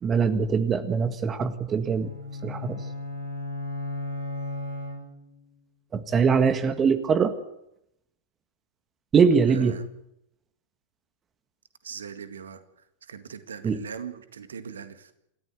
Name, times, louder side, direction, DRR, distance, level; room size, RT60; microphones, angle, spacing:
voice 1, 0.0-2.1 2.4-2.8 5.9-7.3 9.1-9.8 13.6-13.8, right 6 dB, 25° right, 11 dB, 1.7 m, -22 dB
sound 1, 2.0-5.5, left 2 dB, 80° left, 6.8 m, -35 dB
voice 2, 9.5-9.9 11.8-12.6 13.1-15.1, right 7 dB, 70° right, 10 dB, 1.9 m, -40 dB
27.5 x 14.0 x 8.0 m, 0.80 s
figure-of-eight pair, 90°, 0 cm